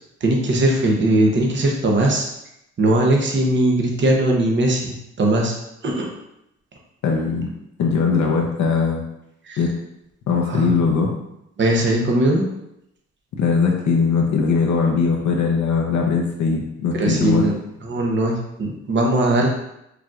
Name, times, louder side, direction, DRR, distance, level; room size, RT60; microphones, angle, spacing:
voice 1, 0.2-2.3 2.8-5.6 5.8-6.1 9.5-9.6 10.5-10.8 11.6-12.5 17.0-17.6 17.8-19.5, right 1 dB, 40° right, 0 dB, 0.9 m, -19 dB
voice 2, 7.0-7.5 7.8-9.0 9.6-9.8 10.3-11.1 13.4-17.4, left 5 dB, 70° left, 0 dB, 0.9 m, -20 dB
4.8 x 3.0 x 2.5 m, 0.83 s
cardioid pair, 90°, 30 cm